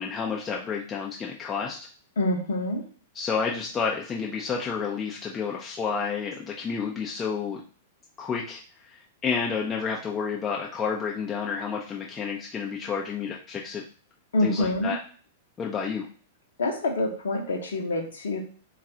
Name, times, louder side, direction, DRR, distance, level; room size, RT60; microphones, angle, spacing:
voice 1, 0.0-1.8 3.1-7.6 8.2-13.8 14.4-15.0 15.6-16.1, left 6 dB, 20° left, -2 dB, 0.5 m, -30 dB
voice 2, 2.2-2.8 14.3-15.0 16.6-18.4, left 2 dB, 65° left, 3 dB, 0.7 m, -26 dB
3.9 x 2.3 x 2.8 m, 0.42 s
figure-of-eight pair, 100°, 0 cm